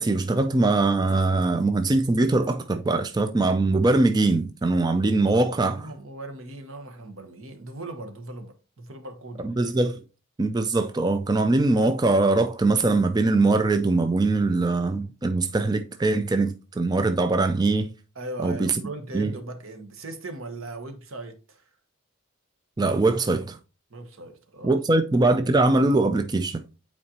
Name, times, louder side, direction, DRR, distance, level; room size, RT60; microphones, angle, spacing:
voice 1, 0.0-5.9 9.4-10.0 10.4-17.9 18.4-18.7 19.1-19.3 22.8-23.6 24.6-26.6, right 2 dB, 20° right, 0.3 m, -22 dB
voice 2, 5.7-9.5 18.1-21.7 23.9-24.8, right 2 dB, 75° right, 1.2 m, -39 dB
8.6 x 4.3 x 2.8 m
head